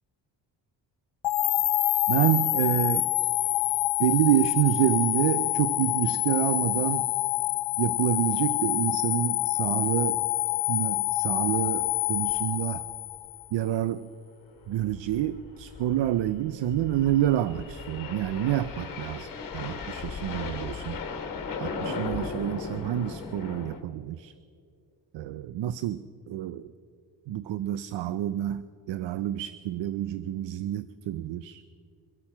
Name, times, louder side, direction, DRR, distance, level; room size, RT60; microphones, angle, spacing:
sound 1, 1.2-13.4, left 15 dB, 85° left, 0.7 m, -27 dB
voice 1, 2.1-3.1 4.0-7.1 7.8-10.2 10.7-12.8 13.5-14.1 14.7-19.3 19.5-21.0 21.6-24.3 25.1-26.7 27.3-31.6, right 12 dB, 75° right, 15 dB, 0.6 m, -28 dB
sound 2, 11.4-11.6 11.9-12.0 12.3-12.4 12.9-13.2 14.5-23.8, left 4 dB, 50° left, 1.8 m, -37 dB
24.0 x 8.7 x 5.8 m, 2.3 s
cardioid pair, 115°, 44 cm